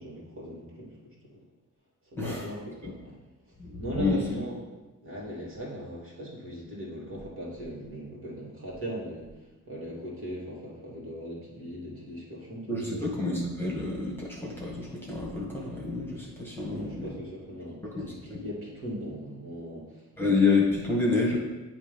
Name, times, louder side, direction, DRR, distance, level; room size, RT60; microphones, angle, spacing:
voice 1, 0.0-1.4 2.1-3.2 3.8-4.6 5.0-9.3 9.6-13.1 16.6-20.1, equal, 45° right, -4 dB, 2.4 m, -39 dB
voice 2, 2.2-2.5 2.8-2.9 3.6-4.2 12.7-17.1 17.9-18.4 20.2-21.4, left 3 dB, 5° left, -3 dB, 1.7 m, -28 dB
8.1 x 3.1 x 5.3 m, 1.1 s
cardioid pair, 90°, 30 cm